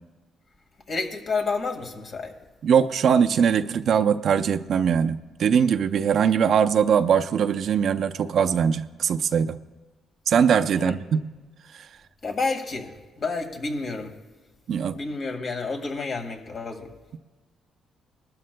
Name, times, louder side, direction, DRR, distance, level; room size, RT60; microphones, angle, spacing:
voice 1, 0.9-2.3 10.7-10.9 12.2-14.1 14.9-16.9, left 3 dB, 55° left, 3 dB, 1.8 m, -30 dB
voice 2, 2.6-9.6 10.3-11.3 11.7-11.9 14.7-15.0, right 7 dB, 60° right, 10 dB, 0.5 m, -21 dB
20.0 x 12.5 x 2.2 m, 1.2 s
cardioid pair, 90°, 0 cm